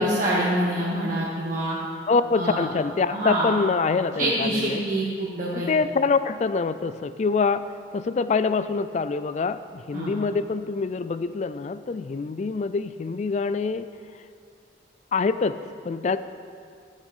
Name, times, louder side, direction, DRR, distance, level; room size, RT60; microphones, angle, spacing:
voice 1, 0.0-1.8 2.4-2.7 3.1-3.5 4.2-5.7 9.9-10.1, right 1 dB, 45° right, -7 dB, 1.3 m, -25 dB
voice 2, 2.1-4.9 5.5-7.7 7.9-13.8 15.1-16.2, left 4 dB, 40° left, 13 dB, 0.3 m, -25 dB
13.0 x 6.5 x 5.4 m, 2.3 s
head